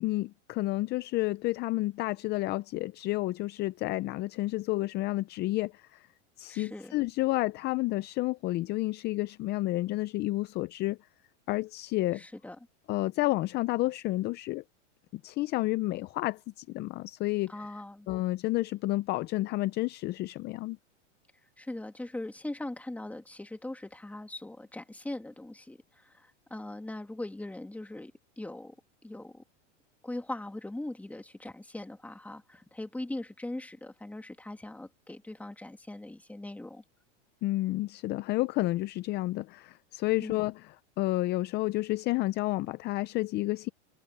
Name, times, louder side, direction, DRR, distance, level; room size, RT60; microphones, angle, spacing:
voice 1, 0.0-5.8 6.4-11.0 11.5-12.2 12.9-14.6 15.2-17.5 18.1-20.8 37.4-40.5 41.0-43.7, left 18 dB, 30° left, 0.5 m, -30 dB
voice 2, 6.5-7.0 12.1-12.6 17.5-18.1 21.6-28.8 29.0-29.4 30.0-36.8 40.2-40.4, left 1 dB, 5° left, 2.3 m, -40 dB
supercardioid pair, 135°, 36 cm